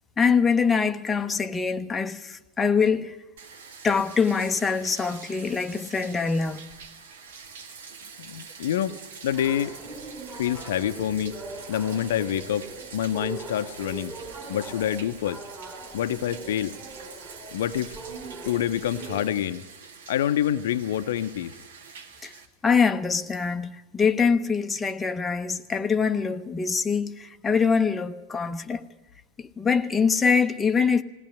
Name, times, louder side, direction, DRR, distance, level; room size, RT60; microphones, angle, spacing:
voice 1, 0.2-3.2 3.8-6.6 22.2-22.3 22.6-28.8 29.4-31.0, left 5 dB, 15° left, 0.7 m, -24 dB
Bathtub (filling or washing), 3.4-22.5, right 5 dB, 60° right, 1.7 m, -45 dB
voice 2, 8.2-9.8 10.4-11.4 11.7-12.7 12.9-14.1 14.5-15.4 15.9-16.7 17.5-18.0 18.4-19.6 20.1-21.5, left 10 dB, 60° left, 0.7 m, -27 dB
sound 1, 9.3-19.2, right 3 dB, 30° right, 5.4 m, -41 dB
19.5 x 17.5 x 9.7 m
figure-of-eight pair, 90°, 0 cm